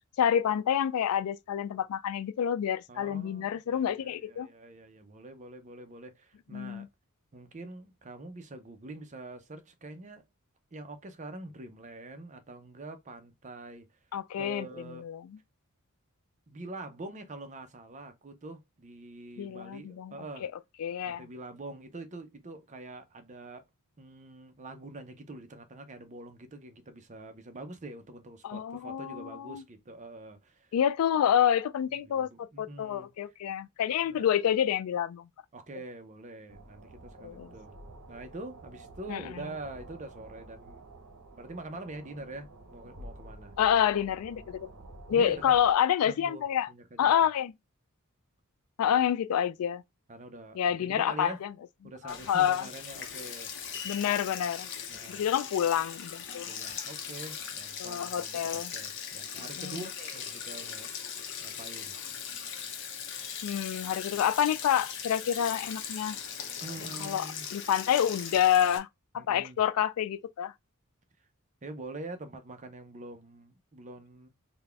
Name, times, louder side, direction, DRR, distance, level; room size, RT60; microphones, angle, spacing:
voice 1, 0.2-4.5 6.5-6.9 14.1-15.2 19.4-20.1 20.4-20.5 20.8-21.2 28.4-29.6 30.7-35.3 37.2-37.5 39.1-39.2 43.6-44.7 45.1-46.7 47.0-47.5 48.8-49.8 50.6-51.5 52.0-52.6 53.8-54.7 55.1-56.5 57.8-58.7 59.6-59.8 63.4-66.2 67.0-68.9 69.1-70.5, left 9 dB, 75° left, 0.3 m, -28 dB
voice 2, 2.9-6.9 7.3-10.2 10.7-13.9 14.4-15.1 16.5-20.5 21.1-23.6 24.0-30.7 32.1-33.3 34.0-34.3 35.5-37.8 38.1-40.8 41.3-43.5 45.1-45.6 46.1-47.3 50.1-51.4 51.8-53.8 54.9-55.3 56.5-60.9 61.4-62.0 66.6-67.5 69.1-69.6 71.6-74.3, right 2 dB, 35° right, 0.6 m, -45 dB
sound 1, 36.5-45.7, right 2 dB, 70° right, 0.9 m, -50 dB
Sink (filling or washing), 52.1-68.8, left 7 dB, 60° left, 0.8 m, -40 dB
3.9 x 2.2 x 3.3 m
head